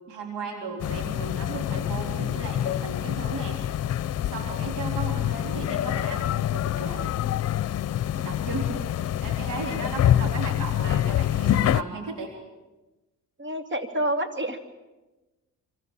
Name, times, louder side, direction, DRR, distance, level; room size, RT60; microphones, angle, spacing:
voice 1, 0.1-3.6 4.3-7.1 8.2-12.3, right 4 dB, 85° right, 2 dB, 3.6 m, -36 dB
sound 1, 0.8-11.8, left 11 dB, 55° left, 0.8 m, -26 dB
voice 2, 13.4-14.6, right 1 dB, 40° right, 6 dB, 3.1 m, -28 dB
26.0 x 25.0 x 7.3 m, 1.1 s
cardioid pair, 90°, 30 cm